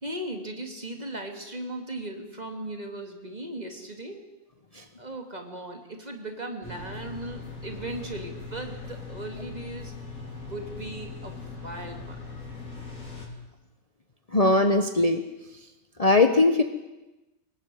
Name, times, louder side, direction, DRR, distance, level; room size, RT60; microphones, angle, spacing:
voice 1, 0.0-4.3 5.0-10.0 10.5-12.2, right 1 dB, 30° right, 3 dB, 2.6 m, -37 dB
sound 1, 6.6-13.3, left 4 dB, 90° left, 4.8 m, -40 dB
voice 2, 14.3-15.2 16.0-16.6, left 2 dB, 30° left, 6 dB, 1.2 m, -20 dB
24.5 x 18.0 x 7.8 m, 1.1 s
omnidirectional pair, 1.4 m